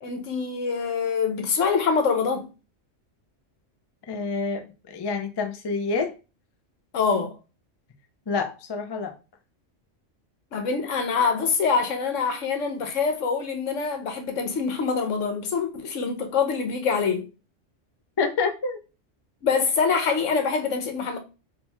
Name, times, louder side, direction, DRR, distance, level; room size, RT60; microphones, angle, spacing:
voice 1, 0.0-2.5 6.9-7.3 10.5-17.3 19.4-21.2, left 5 dB, 80° left, 1.1 m, -25 dB
voice 2, 4.1-6.1 8.3-9.1 18.2-18.8, left 4 dB, 35° left, 0.4 m, -27 dB
4.4 x 2.8 x 3.4 m
omnidirectional pair, 1.3 m